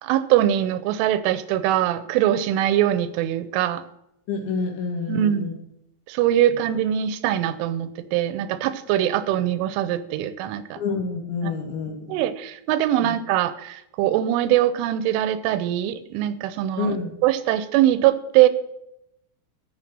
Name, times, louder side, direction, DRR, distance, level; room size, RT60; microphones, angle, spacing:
voice 1, 0.0-3.8 5.1-5.5 6.1-10.8 11.4-11.5 12.1-17.0 17.2-18.5, right 12 dB, 85° right, 14 dB, 3.1 m, -22 dB
voice 2, 4.3-5.5 10.8-12.2 13.0-13.1 16.8-17.1, left 4 dB, 70° left, 3 dB, 4.1 m, -28 dB
14.0 x 6.4 x 7.5 m, 0.80 s
omnidirectional pair, 5.6 m